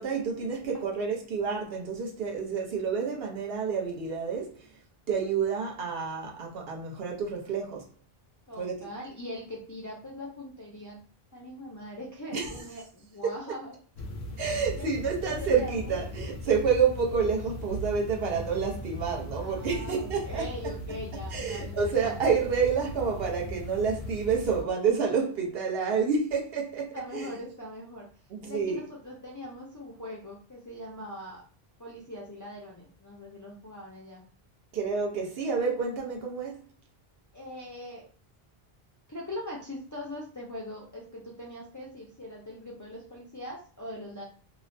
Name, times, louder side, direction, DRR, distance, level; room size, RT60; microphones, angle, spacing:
voice 1, 0.0-4.6 5.1-7.8 8.6-8.9 12.3-12.6 13.2-13.3 14.4-20.5 21.3-27.3 28.3-28.8 34.7-36.6, right 5 dB, 70° right, -1 dB, 1.0 m, -29 dB
voice 2, 8.5-11.0 11.3-13.8 14.7-16.0 19.4-22.2 25.8-26.0 26.9-28.1 28.4-31.4 31.8-34.2 37.3-38.1 39.1-44.2, left 1 dB, 30° left, -4 dB, 0.3 m, -41 dB
sound 1, 14.0-24.6, equal, 85° left, 0.8 m, -38 dB
2.9 x 2.1 x 2.5 m, 0.41 s
omnidirectional pair, 1.0 m